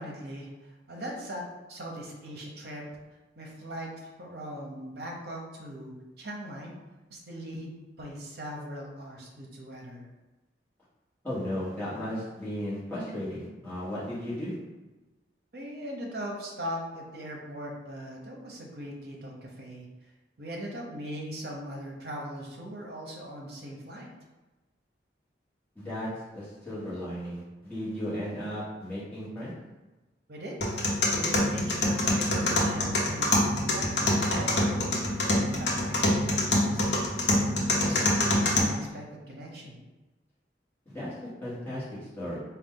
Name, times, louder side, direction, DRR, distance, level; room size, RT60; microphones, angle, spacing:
voice 1, 0.0-2.8 3.4-6.7 7.1-10.1 15.5-19.9 20.4-24.1 30.3-30.6 31.1-37.1 37.7-39.8, equal, 55° right, -1 dB, 0.8 m, -40 dB
voice 2, 11.2-14.6 25.7-29.5 40.8-41.1 41.4-41.8 42.2-42.4, equal, 10° left, -11 dB, 1.4 m, -35 dB
sound 1, 30.6-38.6, left 1 dB, 70° left, 0.7 m, -26 dB
4.0 x 2.3 x 3.7 m, 1.1 s
head